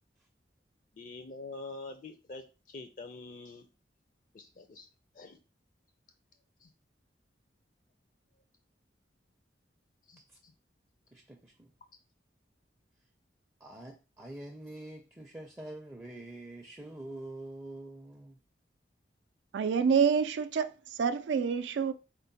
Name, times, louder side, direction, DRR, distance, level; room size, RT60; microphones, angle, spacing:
voice 1, 0.9-3.7 4.3-4.9 5.1-5.4 6.6-6.7 10.1-10.5, left 3 dB, 45° left, 0.4 m, -46 dB
voice 2, 11.1-11.7 13.6-18.4, right 1 dB, 15° right, 0.4 m, -45 dB
voice 3, 19.5-20.7 21.0-21.9, right 6 dB, 80° right, 0.3 m, -27 dB
4.4 x 2.1 x 3.9 m
head